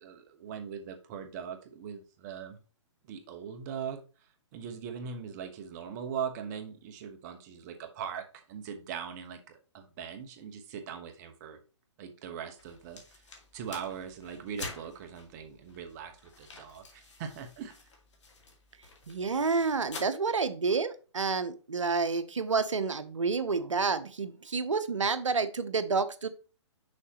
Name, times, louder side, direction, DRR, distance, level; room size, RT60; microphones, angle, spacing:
voice 1, 0.0-2.6 3.1-4.0 4.5-11.6 12.0-13.0 13.5-17.7, right 7 dB, 35° right, 6 dB, 1.1 m, -40 dB
sound 1, 12.6-20.0, left 3 dB, 70° left, 2.0 m, -48 dB
voice 2, 19.1-26.3, right 4 dB, 90° right, 13 dB, 0.8 m, -29 dB
6.4 x 5.7 x 2.9 m, 0.35 s
hypercardioid pair, 135°, 16 cm